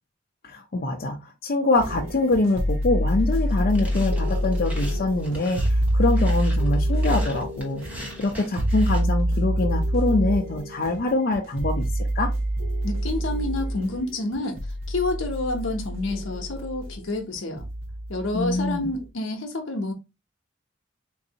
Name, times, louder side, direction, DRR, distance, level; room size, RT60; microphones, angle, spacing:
voice 1, 0.4-12.3 18.3-18.9, left 2 dB, 50° left, 0.5 m, -24 dB
sound 1, 1.7-19.0, equal, 85° right, 0.8 m, -26 dB
sound 2, 3.5-9.0, equal, 10° right, 0.9 m, -41 dB
voice 2, 12.8-14.6 14.9-17.6 18.1-19.9, left 2 dB, 85° left, 0.8 m, -28 dB
3.9 x 2.6 x 2.7 m
head